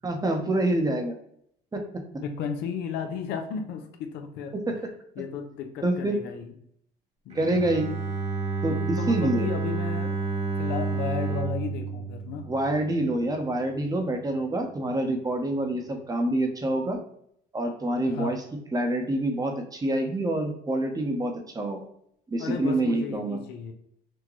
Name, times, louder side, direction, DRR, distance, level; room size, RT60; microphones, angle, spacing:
voice 1, 0.0-1.1 1.7-1.8 4.5-4.7 5.8-6.2 7.3-7.9 8.6-9.5 12.5-17.0 17.5-18.4 18.7-21.8 22.3-23.4, right 1 dB, 20° right, 4 dB, 0.8 m, -26 dB
voice 2, 2.2-4.6 5.2-6.5 7.2-7.7 9.0-10.1 10.6-12.5 18.1-18.4 22.4-23.7, left 6 dB, 85° left, 5 dB, 0.7 m, -34 dB
Bowed string instrument, 7.3-13.3, right 4 dB, 40° right, 1.2 m, -30 dB
6.2 x 2.1 x 3.1 m, 0.70 s
cardioid pair, 110°, 17 cm